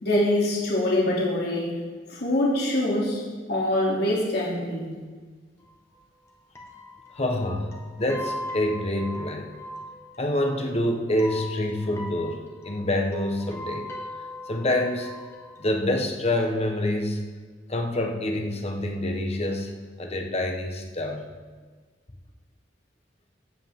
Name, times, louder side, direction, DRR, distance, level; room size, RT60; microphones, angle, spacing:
voice 1, 0.0-1.7 2.1-3.2 3.5-4.9, left 1 dB, 60° left, -5 dB, 3.2 m, -24 dB
sound 1, 5.6-5.7 5.9-6.0 6.2-6.3 6.5-15.7, left 1 dB, 15° left, 1.8 m, -40 dB
voice 2, 7.2-9.5 10.2-13.9 14.5-15.1 15.6-17.3 17.7-21.3, left 1 dB, 35° left, 3 dB, 1.3 m, -27 dB
15.0 x 8.7 x 3.8 m, 1.4 s
head